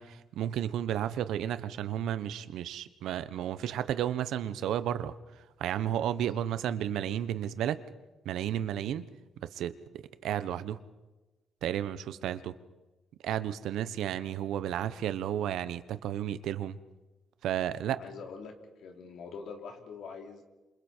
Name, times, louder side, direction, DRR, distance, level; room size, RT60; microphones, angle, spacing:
voice 1, 0.0-5.1 5.6-7.8 8.2-9.1 9.4-10.8 11.6-12.6 13.2-16.8 17.4-18.0, right 10 dB, 80° right, 13 dB, 1.1 m, -32 dB
voice 2, 18.0-20.4, left 5 dB, 75° left, 3 dB, 3.5 m, -44 dB
28.0 x 27.0 x 4.6 m, 1.1 s
cardioid pair, 90°, 0 cm